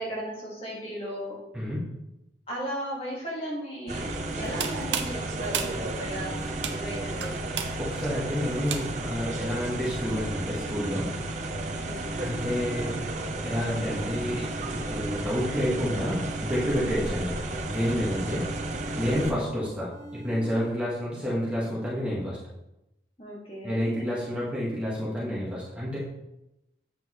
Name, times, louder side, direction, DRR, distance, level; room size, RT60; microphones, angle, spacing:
voice 1, 0.0-1.4 2.5-7.5 11.6-12.1 23.2-23.8 24.1-24.2, equal, 30° left, -4 dB, 1.8 m, -36 dB
sound 1, 3.5-3.6 3.9-5.5 5.9-7.5 7.9-9.5 9.9-11.5 11.9-13.5 13.9-15.5 15.9-17.5 17.9-19.5 19.9-20.7, right 2 dB, 60° right, 1.0 m, -44 dB
sound 2, 3.9-19.3, right 2 dB, 40° right, 0.7 m, -33 dB
sound 3, 4.3-9.2, right 7 dB, 85° right, 0.7 m, -35 dB
voice 2, 7.8-11.2 12.2-13.0 13.4-17.4 17.7-18.5 19.0-22.4 23.6-26.0, equal, 5° right, -8 dB, 1.6 m, -29 dB
8.4 x 5.2 x 3.1 m, 0.92 s
head